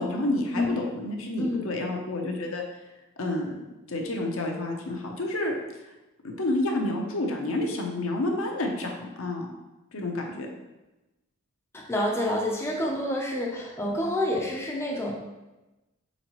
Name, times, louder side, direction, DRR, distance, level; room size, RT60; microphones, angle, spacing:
voice 1, 0.0-2.6 3.2-3.5 3.9-5.5 6.2-9.5 9.9-10.5, left 1 dB, 70° left, 1 dB, 0.7 m, -29 dB
voice 2, 1.4-1.7 11.7-15.1, left 1 dB, 10° left, -2 dB, 0.5 m, -28 dB
4.1 x 3.9 x 2.9 m, 1.0 s
head